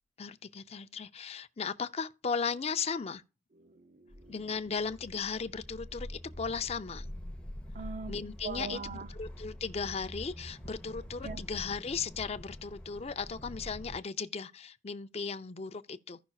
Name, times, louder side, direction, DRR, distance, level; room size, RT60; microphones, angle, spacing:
voice 1, 0.2-3.2 4.3-7.1 8.1-16.2, left 5 dB, 35° left, 0.5 m, -36 dB
voice 2, 3.6-4.3 7.7-8.1 8.4-9.1 11.2-11.4, right 5 dB, 45° right, 0.5 m, -41 dB
sound 1, 4.1-14.0, equal, 5° left, 0.9 m, -45 dB
15.5 x 5.9 x 2.4 m
head